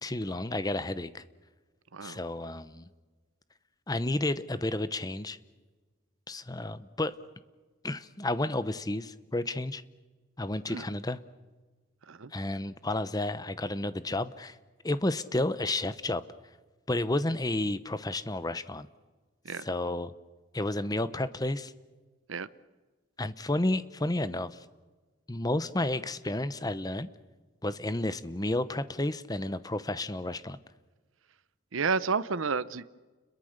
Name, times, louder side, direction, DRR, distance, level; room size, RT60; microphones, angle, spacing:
voice 1, 0.0-1.2 2.0-2.8 3.9-5.4 6.3-7.1 7.8-9.8 10.4-11.2 12.3-14.6 14.8-16.2 16.9-18.9 19.6-20.1 20.5-21.7 23.2-24.6 25.3-27.1 27.6-30.6, left 1 dB, 20° left, 14 dB, 0.8 m, -31 dB
voice 2, 31.7-32.8, right 5 dB, 80° right, 17 dB, 0.8 m, -31 dB
30.0 x 22.0 x 6.6 m, 1.3 s
head